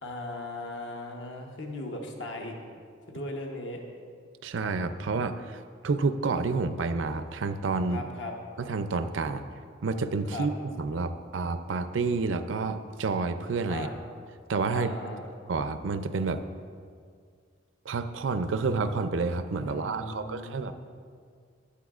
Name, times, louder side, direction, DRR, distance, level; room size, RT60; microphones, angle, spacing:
voice 1, 0.0-2.6 3.1-3.8 7.9-8.3 10.3-10.5 13.7-14.0 14.7-15.3 19.6-20.7, left 1 dB, 70° left, 2 dB, 1.0 m, -38 dB
voice 2, 4.4-8.0 8.6-9.4 9.8-13.9 14.5-14.9 15.5-16.4 17.9-20.7, right 4 dB, 85° right, 10 dB, 0.5 m, -29 dB
14.0 x 8.6 x 2.4 m, 2.1 s
head